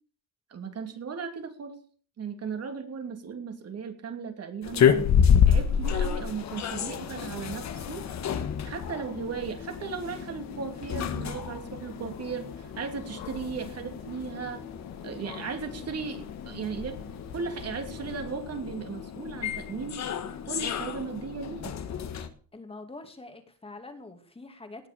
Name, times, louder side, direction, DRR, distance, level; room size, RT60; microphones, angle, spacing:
voice 1, 0.5-1.8 2.2-5.1 5.5-8.0 8.6-14.6 15.0-20.0 20.5-21.7, right 5 dB, 45° right, 6 dB, 2.9 m, -36 dB
sound 1, 4.6-22.3, left 8 dB, 55° left, 1.5 m, -29 dB
sound 2, 5.8-18.2, left 6 dB, 80° left, 2.5 m, -47 dB
voice 2, 22.5-24.9, left 2 dB, 15° left, 6 dB, 2.5 m, -45 dB
18.5 x 6.6 x 6.8 m, 0.43 s
cardioid pair, 130°, 34 cm